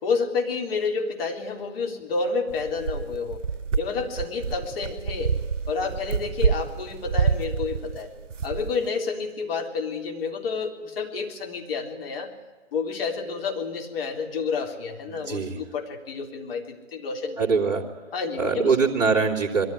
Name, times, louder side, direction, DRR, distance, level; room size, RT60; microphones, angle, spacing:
voice 1, 0.0-3.4 3.8-5.4 5.7-8.1 8.4-12.3 12.7-17.5 18.1-18.8, left 4 dB, 50° left, 2 dB, 3.8 m, -29 dB
sound 1, 2.5-8.9, right 6 dB, 85° right, 0.6 m, -28 dB
voice 2, 15.1-15.6 17.4-17.8 18.4-19.6, right 5 dB, 10° right, -9 dB, 2.9 m, -23 dB
22.0 x 14.5 x 9.9 m, 1.4 s
figure-of-eight pair, 130°, 36 cm